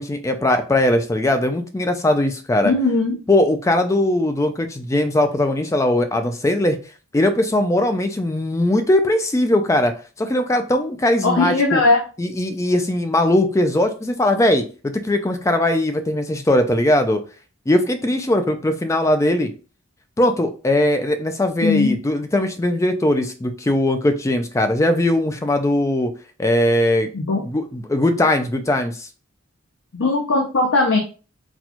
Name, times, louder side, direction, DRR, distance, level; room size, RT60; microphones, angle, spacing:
voice 1, 0.0-2.7 3.3-6.8 7.1-9.9 10.2-11.8 12.2-17.2 17.7-19.5 20.2-26.1 26.4-27.1 27.4-29.1, left 1 dB, 15° left, 8 dB, 0.3 m, -19 dB
voice 2, 2.6-3.2 11.2-12.0 21.6-22.0 27.1-27.5 29.9-31.0, left 3 dB, 65° left, 1 dB, 0.6 m, -18 dB
4.1 x 2.3 x 2.9 m, 0.36 s
head